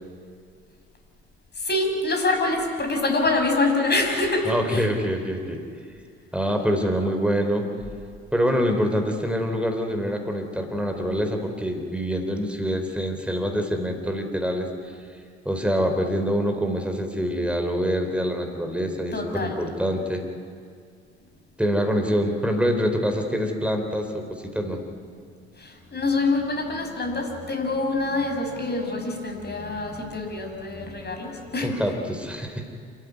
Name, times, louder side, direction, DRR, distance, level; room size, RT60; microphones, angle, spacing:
voice 1, 1.6-4.9 19.1-19.6 25.6-31.7, left 2 dB, 30° left, 3 dB, 6.0 m, -25 dB
voice 2, 4.5-5.6 6.3-7.7 8.3-14.9 15.5-20.2 21.6-24.2 24.5-24.8 31.6-32.6, equal, 5° right, 4 dB, 3.7 m, -25 dB
26.5 x 14.5 x 9.6 m, 2.2 s
figure-of-eight pair, 55°, 32 cm